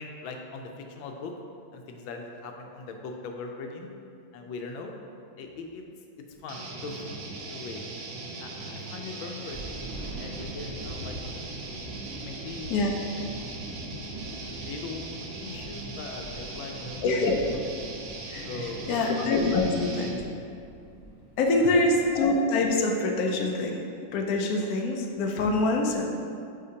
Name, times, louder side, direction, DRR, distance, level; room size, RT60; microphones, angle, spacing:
voice 1, 0.0-1.3 1.7-3.9 4.3-4.9 5.4-5.9 6.4-7.2 7.5-7.8 8.4-9.8 10.0-11.4 12.2-12.7 14.3-15.1 15.4-17.0 18.5-19.1 21.5-22.1, left 4 dB, 90° left, 3 dB, 1.4 m, -40 dB
sound 1, 6.3-6.5 6.8-7.2 9.3-22.3, right 1 dB, 35° right, 0.6 m, -44 dB
sound 2, 6.5-20.2, right 2 dB, 80° right, 1.5 m, -39 dB
voice 2, 17.0-17.4 18.3-18.5 18.9-20.2 21.4-23.8 24.1-26.0, left 2 dB, 65° left, 2 dB, 0.9 m, -25 dB
8.6 x 4.2 x 2.8 m, 2.5 s
omnidirectional pair, 2.1 m